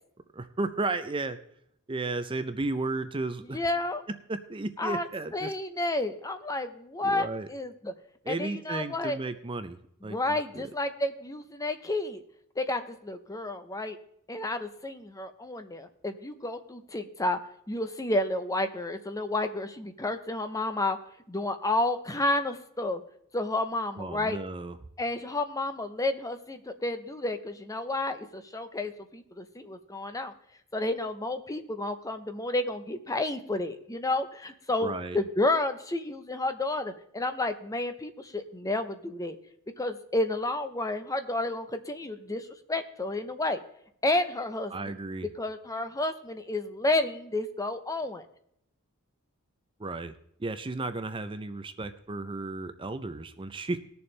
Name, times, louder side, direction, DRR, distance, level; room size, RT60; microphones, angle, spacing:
voice 1, 0.3-1.4 1.9-3.6 4.3-5.5 7.0-7.5 8.3-9.8 10.0-10.7 24.0-24.8 34.8-35.2 44.7-45.3 49.8-50.1 50.4-53.8, right 2 dB, 25° right, 10 dB, 0.5 m, -34 dB
voice 2, 3.5-4.0 4.8-5.1 5.3-7.9 8.3-9.2 10.1-12.2 12.6-14.0 14.3-17.4 17.7-21.0 21.3-23.0 23.3-24.4 25.0-30.3 30.7-39.3 39.8-43.6 44.0-44.9 45.4-48.2, left 2 dB, 15° left, 9 dB, 0.7 m, -31 dB
20.0 x 6.9 x 3.3 m, 0.72 s
head